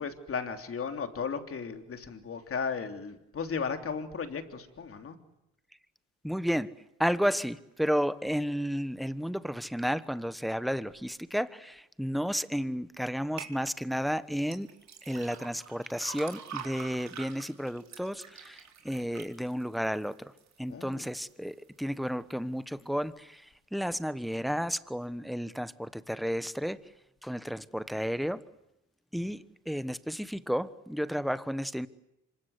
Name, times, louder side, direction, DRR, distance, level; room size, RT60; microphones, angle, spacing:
voice 1, 0.0-5.2 20.7-21.0, left 5 dB, 45° left, 6 dB, 3.3 m, -35 dB
voice 2, 6.2-6.7 7.0-14.7 15.0-20.3 20.6-26.8 27.2-28.4 29.1-31.9, equal, ahead, 14 dB, 1.2 m, -32 dB
sound 1, 13.4-13.5 14.4-20.6 21.0-21.5 22.0-22.1, right 7 dB, 60° right, 4.2 m, -45 dB
26.0 x 24.5 x 8.2 m, 0.87 s
cardioid pair, 90°, 30 cm